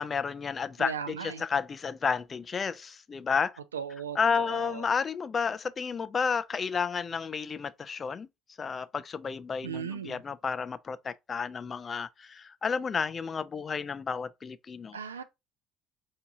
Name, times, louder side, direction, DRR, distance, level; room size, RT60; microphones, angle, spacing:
voice 1, 0.0-3.5 4.2-8.3 8.6-15.0, left 6 dB, 35° left, 0.4 m, -31 dB
voice 2, 0.8-1.4 3.7-4.9 9.6-10.2 14.9-15.2, right 7 dB, 85° right, 0.4 m, -37 dB
4.6 x 2.7 x 3.5 m
figure-of-eight pair, 60°, 0 cm